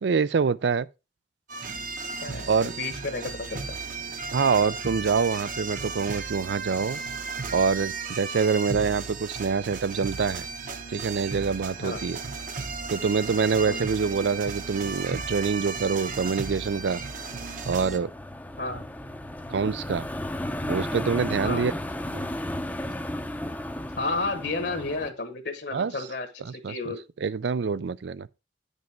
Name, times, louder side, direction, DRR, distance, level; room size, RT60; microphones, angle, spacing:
voice 1, 0.0-0.9 2.5-2.7 4.3-7.0 7.5-10.5 10.9-12.2 12.9-17.0 17.7-18.1 19.5-20.0 20.7-21.7 22.1-22.3 25.7-25.9 26.6-28.3, right 5 dB, 70° right, 0.4 m, -25 dB
sound 1, 1.5-18.0, right 4 dB, 45° right, 0.9 m, -35 dB
voice 2, 2.2-2.5 2.8-3.8 8.6-8.8 11.8-12.0 13.7-13.8 18.6-18.8 21.4-21.7 24.0-27.0, left 3 dB, 65° left, 1.4 m, -32 dB
sound 2, 11.7-25.1, left 1 dB, 10° left, 0.6 m, -36 dB
9.2 x 5.4 x 4.3 m
head